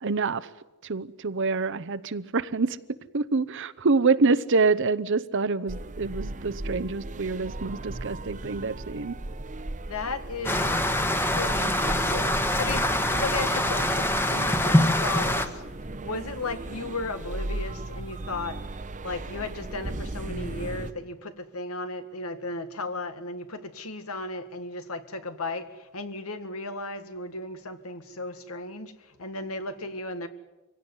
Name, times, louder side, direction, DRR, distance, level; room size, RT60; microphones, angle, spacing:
voice 1, 0.0-0.5 0.8-2.8 3.1-9.2, right 4 dB, 60° right, 14 dB, 0.8 m, -26 dB
sound 1, 5.7-20.9, right 2 dB, 35° right, 0.9 m, -37 dB
voice 2, 9.9-10.9 11.2-15.5 16.0-18.6 19.0-30.3, left 2 dB, 75° left, 10 dB, 1.8 m, -35 dB
sound 2, 10.4-15.5, left 1 dB, 10° left, 1.3 m, -24 dB
24.0 x 17.0 x 9.8 m, 1.1 s
head